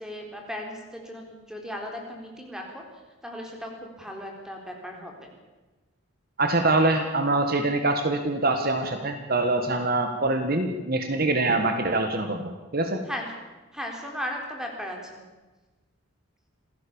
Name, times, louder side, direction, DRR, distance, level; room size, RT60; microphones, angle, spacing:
voice 1, 0.0-2.8 3.2-5.3 13.1-13.3 13.7-15.2, equal, 5° right, 1 dB, 3.9 m, -36 dB
voice 2, 6.4-13.0, right 2 dB, 45° right, 6 dB, 1.8 m, -24 dB
27.0 x 16.5 x 7.2 m, 1.2 s
head